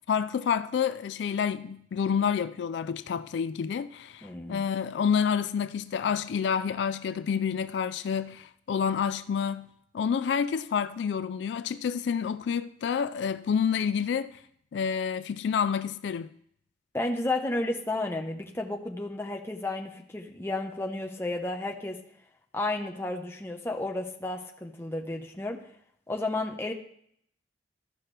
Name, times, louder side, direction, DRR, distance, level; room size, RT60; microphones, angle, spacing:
voice 1, 0.1-9.7 9.9-14.4 14.7-16.3, left 7 dB, 75° left, 0.3 m, -28 dB
voice 2, 4.2-4.6 16.9-22.0 22.5-25.6 26.1-26.7, left 2 dB, 15° left, 0.8 m, -32 dB
14.0 x 5.7 x 3.3 m
head